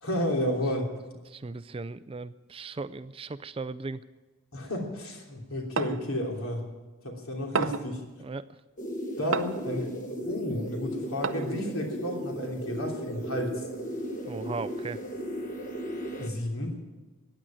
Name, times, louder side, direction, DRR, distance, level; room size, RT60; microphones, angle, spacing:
voice 1, 0.0-0.9 4.5-6.6 7.0-8.0 9.2-13.6 16.2-16.8, left 1 dB, 75° left, 1 dB, 3.2 m, -32 dB
voice 2, 1.3-4.0 8.2-8.5 14.3-15.0, right 3 dB, 25° right, 14 dB, 0.4 m, -37 dB
sound 1, 5.8-6.1 7.6-8.0 9.3-9.7 11.2-11.6, right 5 dB, 60° right, 0.7 m, -30 dB
sound 2, 8.8-16.3, equal, 35° left, 1.4 m, -36 dB
15.0 x 10.0 x 9.2 m, 1.2 s
head